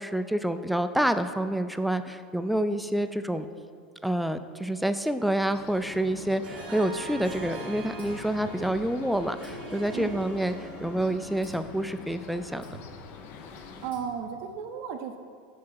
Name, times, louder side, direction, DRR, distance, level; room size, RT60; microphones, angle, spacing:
voice 1, 0.0-3.5 4.0-12.6, right 1 dB, ahead, 10 dB, 0.3 m, -28 dB
sound 1, 5.5-13.9, left 5 dB, 50° left, 0.6 m, -44 dB
Harp, 6.4-11.9, right 3 dB, 80° right, 0.9 m, -43 dB
sound 2, 8.0-9.0 9.4-10.7 11.4-11.9 12.6-13.2 13.9-14.5, right 1 dB, 80° left, 1.6 m, -49 dB
voice 2, 9.9-10.2 13.5-15.2, right 7 dB, 55° right, 6 dB, 0.5 m, -35 dB
6.4 x 3.7 x 5.8 m, 2.2 s
hypercardioid pair, 90°, 5 cm